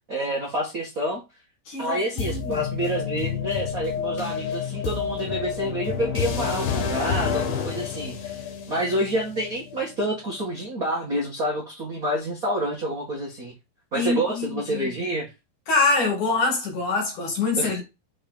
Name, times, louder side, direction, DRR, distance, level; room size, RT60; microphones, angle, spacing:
voice 1, 0.1-1.2 1.8-8.4 8.7-13.5 13.9-15.3 17.6-17.8, right 1 dB, 45° right, 1.2 m, -28 dB
voice 2, 1.7-2.6 13.9-14.9 15.7-17.8, left 3 dB, 55° left, 3.2 m, -25 dB
sound 1, 2.2-10.1, left 7 dB, 75° left, 2.9 m, -29 dB
6.2 x 4.5 x 4.0 m
omnidirectional pair, 4.6 m